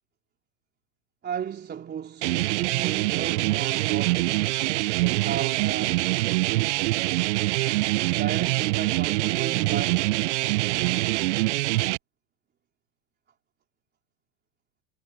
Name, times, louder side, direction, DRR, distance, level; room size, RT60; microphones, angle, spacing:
voice 1, 1.2-6.1 8.1-10.3, right 8 dB, 25° right, 3.6 m, -35 dB
sound 1, 2.2-12.0, right 20 dB, 55° right, 1.2 m, -24 dB
hypercardioid pair, 100°, 42 cm